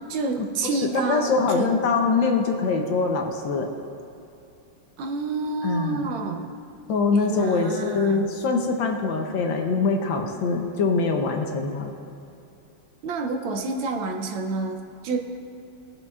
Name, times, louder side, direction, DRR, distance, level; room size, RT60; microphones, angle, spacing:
voice 1, 0.1-1.7 5.0-6.5 7.1-8.3 13.0-15.2, right 3 dB, 70° right, 3 dB, 1.4 m, -28 dB
voice 2, 0.8-3.7 5.6-6.1 6.9-12.0, left 4 dB, 70° left, 3 dB, 1.3 m, -23 dB
18.5 x 6.8 x 2.4 m, 2.7 s
omnidirectional pair, 2.4 m